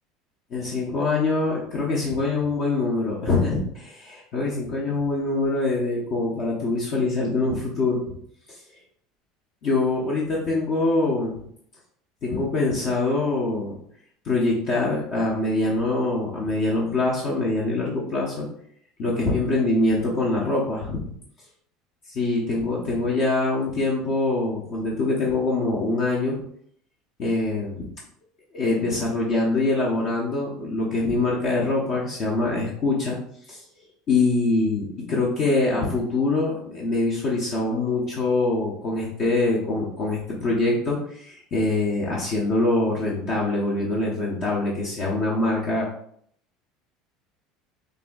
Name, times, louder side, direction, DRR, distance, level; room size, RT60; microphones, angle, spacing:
voice 1, 0.5-8.0 9.6-11.4 12.2-13.7 14.2-18.5 19.0-21.1 22.1-26.4 27.2-27.8 28.5-33.2 33.5-33.6 34.1-45.9, left 2 dB, 40° left, -4 dB, 0.8 m, -24 dB
6.6 x 2.6 x 2.3 m, 0.65 s
cardioid pair, 165°, 0 cm